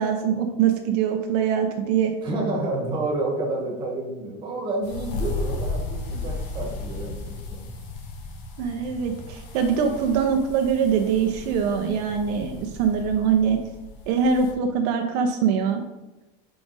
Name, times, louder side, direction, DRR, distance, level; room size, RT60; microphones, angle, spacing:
voice 1, 0.0-2.1 8.6-13.6 14.1-15.8, right 7 dB, 75° right, 4 dB, 0.7 m, -23 dB
voice 2, 2.2-7.7, right 2 dB, 20° right, -2 dB, 1.3 m, -29 dB
sound 1, 4.8-14.5, left 3 dB, 80° left, 1.0 m, -35 dB
4.9 x 4.8 x 4.0 m, 1.0 s
cardioid pair, 180°, 21 cm